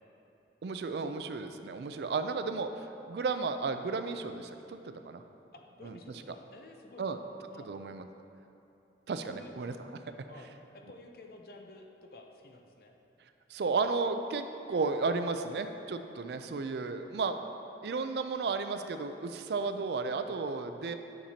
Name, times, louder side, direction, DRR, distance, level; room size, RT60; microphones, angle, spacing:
voice 1, 0.6-5.2 5.8-6.0 7.0-7.2 7.7-8.1 9.1-9.7 13.5-17.4 17.8-20.9, right 4 dB, 70° right, 8 dB, 0.4 m, -33 dB
voice 2, 5.5-7.2 7.5-7.7 9.2-9.5 10.3-12.9, left 2 dB, 55° left, 3 dB, 0.6 m, -51 dB
10.0 x 6.6 x 2.8 m, 2.9 s
head